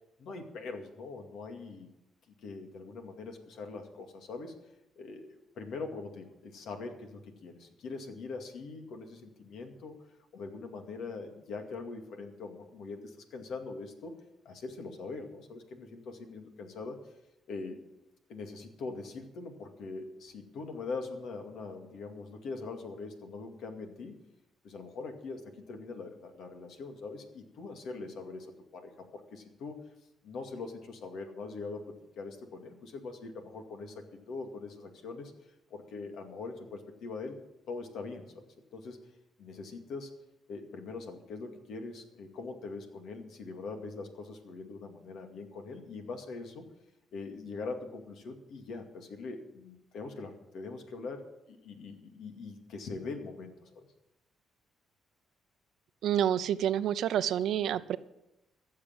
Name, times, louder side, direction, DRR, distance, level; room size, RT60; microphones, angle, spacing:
voice 1, 0.2-1.9 2.4-4.5 5.0-10.0 10.3-14.1 14.4-17.1 17.5-17.8 18.3-24.2 24.6-29.8 30.2-35.3 35.7-37.4 37.7-39.1 39.4-40.1 40.5-46.7 47.1-53.9, left 3 dB, 75° left, 5 dB, 2.2 m, -42 dB
voice 2, 56.0-58.0, right 10 dB, 75° right, 15 dB, 0.6 m, -28 dB
15.0 x 6.7 x 9.0 m, 0.90 s
cardioid pair, 90°, 0 cm